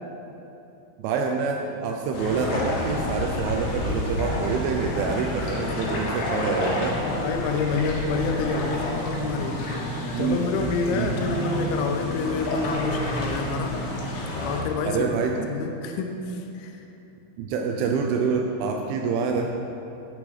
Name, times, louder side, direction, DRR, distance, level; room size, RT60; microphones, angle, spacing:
voice 1, 1.0-6.9 10.1-10.5 10.9-11.4 14.9-15.5 17.4-19.5, right 5 dB, 85° right, 2 dB, 3.0 m, -26 dB
sound 1, 2.1-14.6, left 1 dB, 65° left, 3.5 m, -29 dB
voice 2, 5.7-6.1 6.6-9.7 10.2-13.7 14.4-16.8, left 4 dB, 90° left, 3 dB, 2.2 m, -28 dB
15.5 x 5.3 x 4.9 m, 3.0 s
omnidirectional pair, 5.5 m